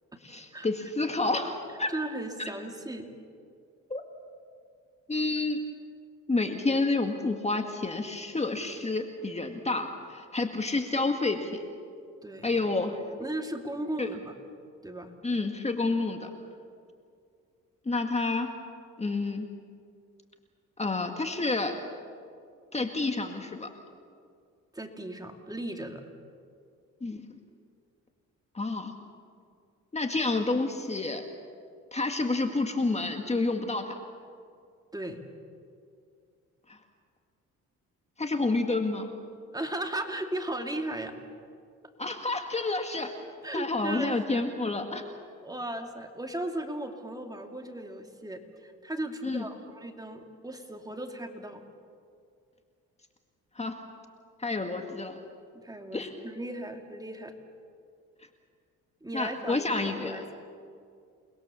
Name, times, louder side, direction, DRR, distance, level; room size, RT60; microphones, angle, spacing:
voice 1, 0.2-1.9 2.4-2.5 3.9-4.0 5.1-5.6 6.3-11.6 12.4-13.0 14.0-14.1 15.2-16.3 17.9-18.5 19.0-19.5 20.8-21.7 22.7-23.7 27.0-27.2 28.5-28.9 29.9-31.2 31.9-33.9 36.7-36.8 38.2-39.1 42.0-43.1 43.5-45.1 49.2-49.4 53.6-53.8 54.4-55.1 55.9-56.1 59.1-60.2, left 3 dB, 20° left, 5 dB, 1.9 m, -29 dB
voice 2, 1.9-3.1 9.8-9.9 12.2-12.5 13.2-14.3 14.8-15.1 24.7-26.0 34.9-35.2 39.5-41.2 43.4-44.4 45.4-51.6 55.5-57.3 59.0-60.3, right 1 dB, 10° right, 4 dB, 2.6 m, -36 dB
29.0 x 21.0 x 7.1 m, 2.3 s
cardioid pair, 90°, 30 cm